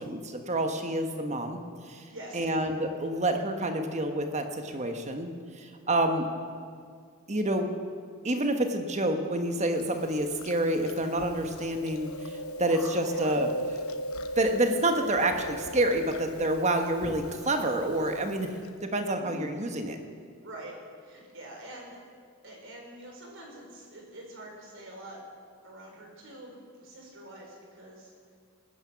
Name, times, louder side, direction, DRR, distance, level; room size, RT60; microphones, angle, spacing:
voice 1, 0.0-1.6 1.9-2.0 2.3-5.3 5.6-6.3 7.3-7.7 8.2-13.5 14.4-18.5 18.8-20.0, right 1 dB, 35° right, 5 dB, 1.2 m, -28 dB
voice 2, 2.1-2.5 13.1-13.3 19.1-19.5 20.4-20.7 21.0-22.0 22.4-25.2 25.6-28.1, right 1 dB, 60° right, 0 dB, 3.9 m, -45 dB
Chewing mastication, 9.7-18.7, equal, 85° left, 1.0 m, -38 dB
19.5 x 10.0 x 5.8 m, 2.1 s
head